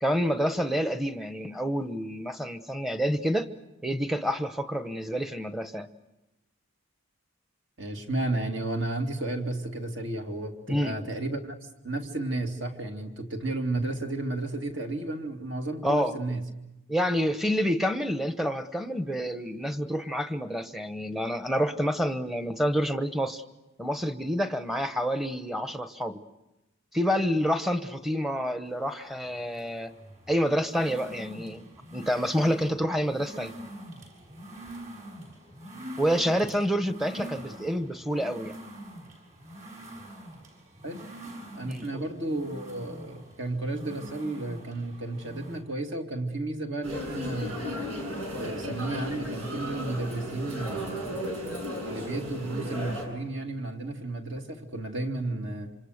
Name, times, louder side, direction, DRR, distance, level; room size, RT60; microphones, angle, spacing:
voice 1, 0.0-3.5 3.8-5.9 10.7-11.0 15.8-16.1 16.9-23.4 23.8-26.2 26.9-29.9 30.3-31.6 31.9-33.5 36.0-38.5 41.6-42.0, equal, ahead, 8 dB, 1.0 m, -28 dB
voice 2, 7.8-11.5 11.8-16.5 40.8-41.1 41.5-47.7 48.3-51.2 51.9-55.8, right 2 dB, 55° right, 3 dB, 2.6 m, -33 dB
sound 1, 28.7-45.6, right 1 dB, 35° right, 6.9 m, -45 dB
sound 2, 46.8-53.0, equal, 85° right, 7.2 m, -35 dB
27.5 x 26.5 x 6.6 m, 1.0 s
head